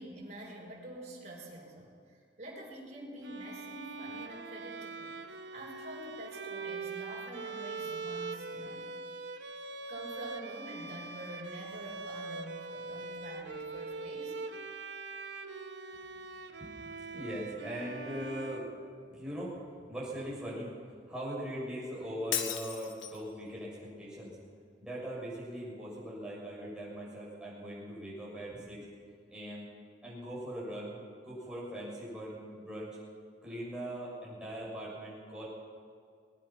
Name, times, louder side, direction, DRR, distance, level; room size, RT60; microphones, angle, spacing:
voice 1, 0.0-8.9 9.9-14.3, right 1 dB, 40° right, -3 dB, 5.7 m, -46 dB
Bowed string instrument, 3.2-19.3, right 4 dB, 65° right, 1.3 m, -42 dB
voice 2, 16.6-18.7 19.1-19.6 19.9-20.7 21.1-24.4 24.8-28.9 29.3-29.7 30.0-31.0 31.2-33.0 33.4-35.5, equal, 5° right, -6 dB, 6.7 m, -40 dB
Shatter, 22.3-23.3, left 9 dB, 85° left, 1.6 m, -35 dB
21.0 x 20.5 x 6.0 m, 2.2 s
head